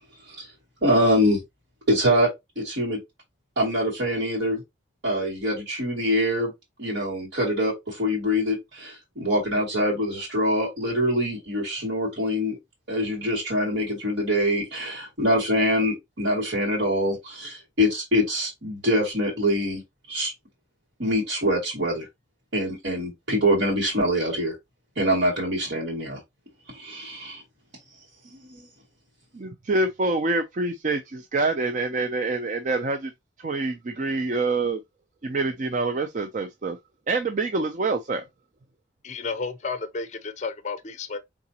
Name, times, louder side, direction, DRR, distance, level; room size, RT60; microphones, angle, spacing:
voice 1, 0.8-1.4 1.9-2.3 2.6-3.0 3.6-4.6 5.0-6.5 6.8-12.6 12.9-19.8 20.1-20.3 21.0-22.1 22.5-24.6 25.0-26.2 26.7-27.4 28.2-28.7, equal, 70° right, 2.4 m, -24 dB
voice 2, 29.3-33.1 33.4-34.8 35.2-36.8 37.1-38.2, right 3 dB, 40° right, 0.4 m, -26 dB
voice 3, 39.0-41.2, left 4 dB, 40° left, 0.5 m, -32 dB
4.8 x 3.6 x 2.8 m
head